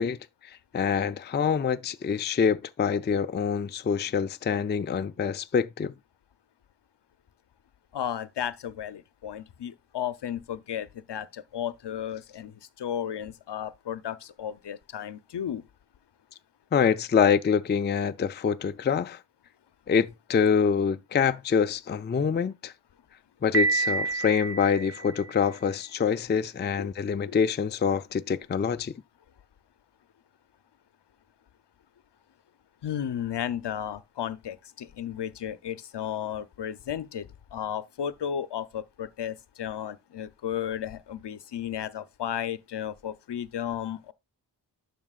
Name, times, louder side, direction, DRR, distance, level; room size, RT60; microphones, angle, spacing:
voice 1, 0.0-5.9 16.7-19.2 19.9-22.7 23.4-28.9, left 6 dB, 25° left, 0.4 m, -25 dB
voice 2, 7.9-15.6 26.8-26.9 27.3-27.4 32.8-44.1, left 9 dB, 70° left, 0.7 m, -34 dB
Piano, 23.5-25.5, right 4 dB, 35° right, 0.7 m, -28 dB
11.0 x 5.9 x 2.4 m
wide cardioid pair, 75°, 43 cm